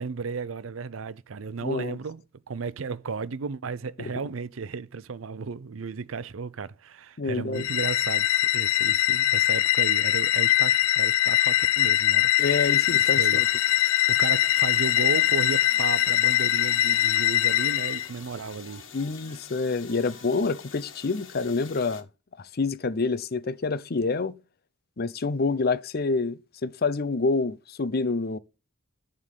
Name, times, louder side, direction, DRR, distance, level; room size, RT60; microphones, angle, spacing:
voice 1, 0.0-12.4 12.9-13.4 14.1-18.8, right 5 dB, 80° right, 0.5 m, -34 dB
voice 2, 1.6-2.0 4.0-4.1 7.2-7.7 12.4-13.5 18.9-22.1 22.4-24.4 25.0-28.4, left 3 dB, 50° left, 0.6 m, -27 dB
sound 1, 7.6-18.1, left 13 dB, 85° left, 0.4 m, -22 dB
sound 2, 12.4-22.0, left 7 dB, 65° left, 1.6 m, -47 dB
Wind instrument woodwind instrument, 15.1-20.9, right 3 dB, 40° right, 2.5 m, -54 dB
11.0 x 3.8 x 6.6 m
head